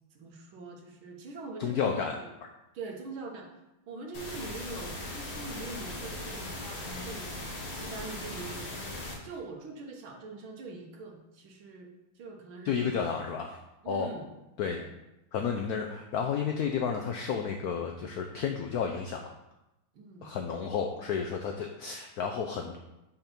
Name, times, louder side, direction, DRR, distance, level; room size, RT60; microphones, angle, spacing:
voice 1, 0.1-2.3 2.7-3.5 3.9-7.3 7.7-9.0 9.2-11.9 12.2-13.0 13.8-14.2 14.7-14.9 20.0-20.3, right 3 dB, 85° right, 1 dB, 1.9 m, -43 dB
voice 2, 1.6-2.5 12.6-13.6 13.9-14.1 14.6-14.8 15.3-19.3 20.2-22.8, left 6 dB, 85° left, 3 dB, 0.8 m, -32 dB
sound 1, 4.1-9.1, left 2 dB, 60° left, 1.8 m, -39 dB
5.7 x 4.3 x 5.2 m, 0.95 s
omnidirectional pair, 2.2 m